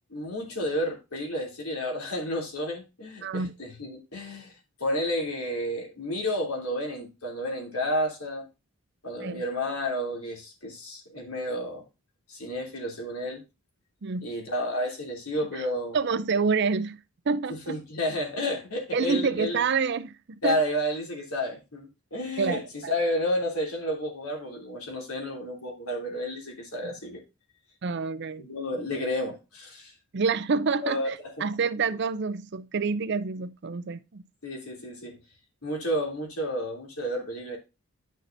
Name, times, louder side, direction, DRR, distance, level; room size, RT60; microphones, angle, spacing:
voice 1, 0.1-4.5 4.8-8.5 9.0-11.8 12.3-13.4 14.2-16.0 17.5-19.6 20.4-27.2 28.4-29.9 30.8-31.1 31.4-31.5 34.4-35.2 35.6-37.6, equal, 85° left, 3.1 m, -31 dB
voice 2, 3.2-3.5 9.2-9.4 14.0-14.2 15.5-15.6 15.9-17.0 17.3-17.8 18.9-20.6 22.4-22.9 26.8-26.9 27.8-28.5 30.1-34.2, right 5 dB, 50° right, 0.5 m, -28 dB
10.0 x 6.4 x 2.6 m
head